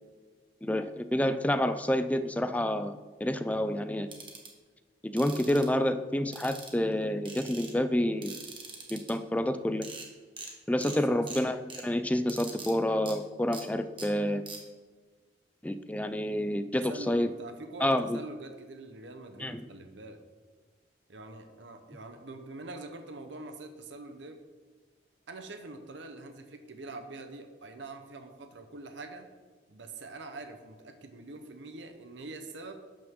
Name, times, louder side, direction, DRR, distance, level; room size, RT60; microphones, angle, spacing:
voice 1, 0.6-4.1 5.0-8.3 8.9-9.9 10.7-14.4 15.6-17.3 17.8-18.2 19.4-19.6, left 1 dB, 10° left, 10 dB, 0.4 m, -28 dB
sound 1, 4.1-4.5 5.2-5.7 6.3-6.9 7.3-7.7 8.2-9.1 9.6-9.7 9.8-10.1 10.4-10.5 10.8-11.0 11.3-11.8 12.3-12.7 13.1-13.2 13.5-13.6 14.0-14.1 14.5-14.6, right 4 dB, 25° right, 1.5 m, -43 dB
voice 2, 10.8-11.2 16.7-20.2 21.1-24.4 25.3-29.3 29.7-32.7, right 2 dB, 70° right, 6 dB, 0.9 m, -44 dB
12.0 x 8.7 x 3.7 m, 1.4 s
head